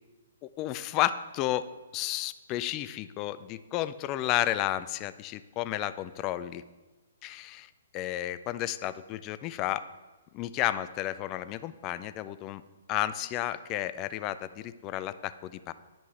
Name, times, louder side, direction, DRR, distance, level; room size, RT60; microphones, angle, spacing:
voice 1, 0.4-1.7 1.9-6.6 7.2-7.7 7.9-9.8 10.3-12.6 12.9-15.7, left 14 dB, 30° left, 14 dB, 0.3 m, -32 dB
10.0 x 5.2 x 3.2 m, 1.2 s
figure-of-eight pair, 125°, 0 cm